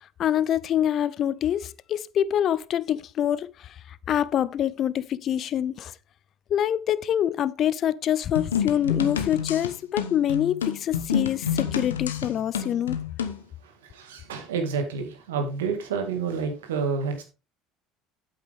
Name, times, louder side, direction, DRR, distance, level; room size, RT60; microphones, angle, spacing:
voice 1, 0.2-5.9 6.5-13.0, left 10 dB, 50° left, 0.5 m, -25 dB
sound 1, 8.3-13.4, left 8 dB, 90° left, 0.9 m, -29 dB
voice 2, 13.8-17.2, right 5 dB, 85° right, 2.0 m, -29 dB
8.4 x 8.2 x 3.5 m
hypercardioid pair, 70°, 0 cm